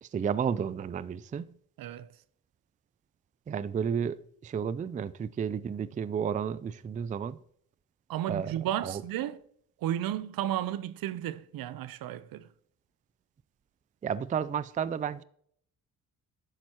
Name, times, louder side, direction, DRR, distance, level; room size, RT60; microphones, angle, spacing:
voice 1, 0.0-1.5 3.5-7.4 8.3-8.5 8.8-9.0 14.0-15.2, right 7 dB, 20° right, 0.3 m, -32 dB
voice 2, 1.8-2.1 8.1-9.4 9.8-12.5, right 12 dB, 70° right, 0.7 m, -33 dB
11.5 x 7.5 x 2.9 m
supercardioid pair, 60°, 37 cm